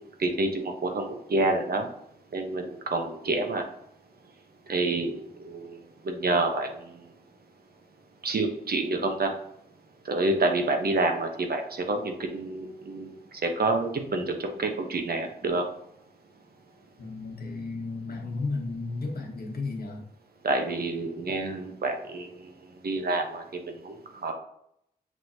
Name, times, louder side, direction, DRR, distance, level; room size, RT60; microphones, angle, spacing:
voice 1, 0.0-1.9 2.3-3.6 4.7-5.8 6.0-6.9 8.2-9.3 10.0-13.1 13.4-15.6 20.4-22.4 22.8-24.3, right 2 dB, 60° right, 4 dB, 0.8 m, -28 dB
voice 2, 17.0-20.0, left 3 dB, 60° left, 0 dB, 1.1 m, -33 dB
6.2 x 3.0 x 2.6 m, 0.73 s
cardioid pair, 55°, 17 cm